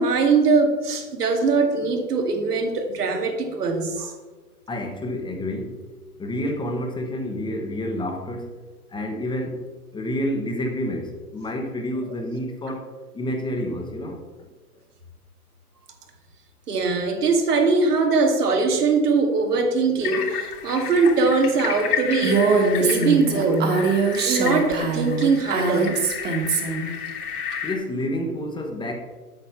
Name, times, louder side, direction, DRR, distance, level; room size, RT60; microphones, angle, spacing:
voice 1, 0.0-4.1 16.7-23.9 24.2-26.0, right 4 dB, 85° right, 4 dB, 2.1 m, -21 dB
voice 2, 4.7-5.8 6.2-8.6 8.9-9.7 9.9-14.5 27.6-29.0, left 1 dB, 10° left, 3 dB, 0.9 m, -29 dB
sound 1, 20.0-27.7, left 8 dB, 75° left, 2.8 m, -32 dB
Female speech woman speaking, 22.2-26.9, right 4 dB, 20° right, 1.5 m, -22 dB
8.1 x 7.1 x 5.9 m, 1.3 s
hypercardioid pair, 130°, 46 cm